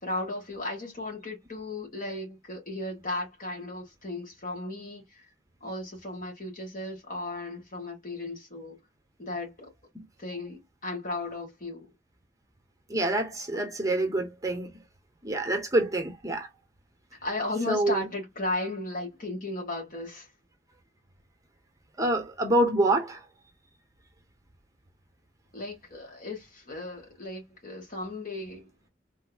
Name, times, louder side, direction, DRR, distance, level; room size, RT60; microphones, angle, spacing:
voice 1, 0.0-5.3 5.6-8.8 9.2-9.7 10.2-11.9 13.5-13.9 17.1-20.3 25.5-28.9, left 2 dB, 50° left, 1.9 m, -35 dB
voice 2, 12.9-14.7 15.2-16.5 17.7-18.1 22.0-23.2, right 1 dB, 20° right, 0.7 m, -26 dB
3.5 x 2.9 x 2.2 m
head